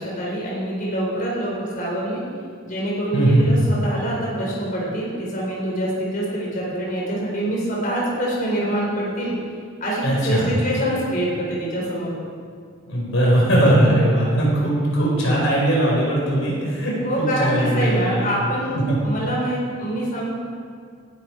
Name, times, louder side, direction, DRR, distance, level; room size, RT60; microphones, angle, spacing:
voice 1, 0.0-2.2 2.6-9.3 9.8-12.1 17.0-18.8 19.0-20.3, right 1 dB, 40° left, -4 dB, 4.3 m, -25 dB
voice 2, 3.1-3.6 10.0-10.5 12.9-18.3 18.9-19.0, right 1 dB, 65° left, -4 dB, 4.6 m, -19 dB
19.5 x 12.0 x 4.7 m, 2.3 s
head